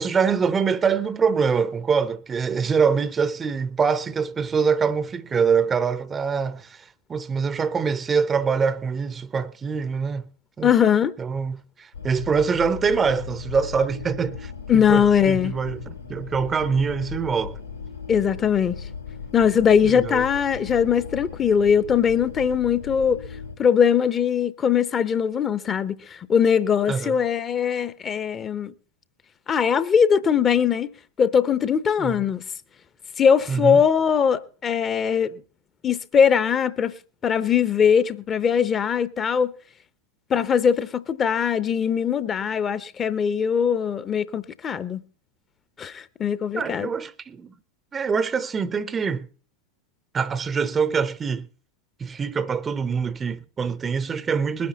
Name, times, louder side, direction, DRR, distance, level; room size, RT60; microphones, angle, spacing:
voice 1, 0.0-10.2 10.6-10.7 11.2-17.6 19.8-20.2 26.9-27.2 32.0-32.2 33.5-33.8 46.6-47.5 47.9-49.3 50.1-51.5 52.0-54.7, right 5 dB, 20° right, 0.6 m, -24 dB
voice 2, 10.6-11.1 14.7-15.6 18.1-18.8 19.3-23.2 23.6-28.7 29.5-30.9 31.2-32.4 33.2-35.3 35.8-36.9 37.2-39.5 40.3-45.0 45.8-46.9, left 7 dB, 25° left, 0.7 m, -21 dB
sound 1, 11.9-23.6, left 5 dB, 85° left, 3.4 m, -37 dB
21.0 x 9.6 x 4.1 m
figure-of-eight pair, 90°, 0 cm